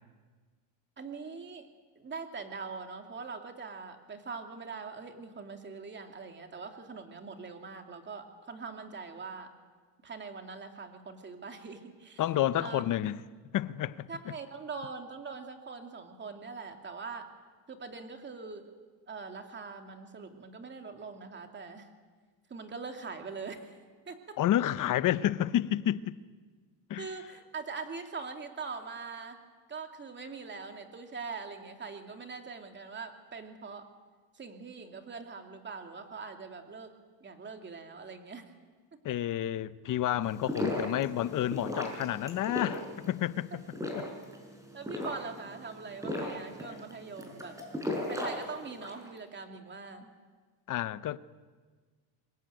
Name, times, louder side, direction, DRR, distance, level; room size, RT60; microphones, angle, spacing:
voice 1, 1.0-1.7 2.0-9.5 10.0-12.2 12.6-12.8 14.1-17.3 17.7-18.7 19.1-21.9 22.5-23.8 24.1-24.4 27.0-29.4 29.7-33.9 34.3-36.9 37.2-38.5 38.9-39.0 44.7-47.6 48.1-50.1, right 4 dB, 20° right, 2.7 m, -42 dB
voice 2, 12.2-13.2 13.5-14.1 24.4-26.2 26.9-27.1 39.0-43.6 43.9-44.1 50.7-51.2, left 12 dB, 40° left, 0.8 m, -30 dB
sound 1, 40.2-49.1, left 1 dB, 5° right, 5.4 m, -37 dB
26.0 x 22.0 x 9.2 m
cardioid pair, 145°, 48 cm